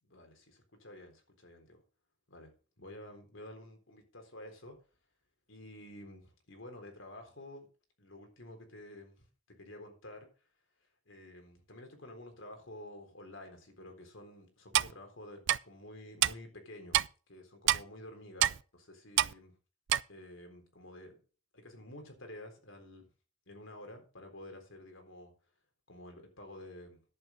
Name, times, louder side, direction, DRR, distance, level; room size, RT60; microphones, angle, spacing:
voice 1, 0.0-1.8 2.3-2.5 2.8-4.8 5.5-7.7 8.0-9.3 9.6-10.5 11.1-19.5 20.1-21.2 21.5-23.1 23.5-25.3 25.9-27.0, left 1 dB, 65° left, 4 dB, 3.9 m, -50 dB
Clock, 14.7-14.9 15.5-15.6 16.2-16.3 16.9-17.1 17.7-17.8 18.4-18.6 19.2-19.3 19.9-20.0, right 12 dB, 60° right, 0.4 m, -26 dB
11.0 x 8.4 x 5.2 m, 0.36 s
head